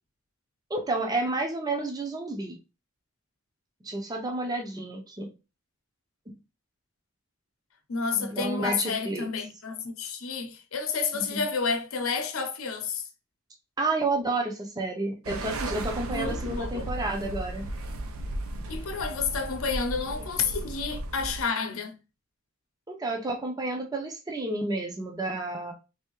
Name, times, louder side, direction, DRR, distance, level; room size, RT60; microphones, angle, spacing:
voice 1, 0.7-2.6 3.8-5.3 6.3-6.4 8.1-9.3 11.1-11.4 13.8-17.7 22.9-25.7, right 2 dB, 20° right, 0.5 m, -30 dB
voice 2, 7.9-13.1 16.1-17.0 18.7-21.9, left 5 dB, 80° left, 0.7 m, -30 dB
sound 1, 15.2-21.4, right 1 dB, 85° right, 0.5 m, -35 dB
3.4 x 2.7 x 2.9 m
head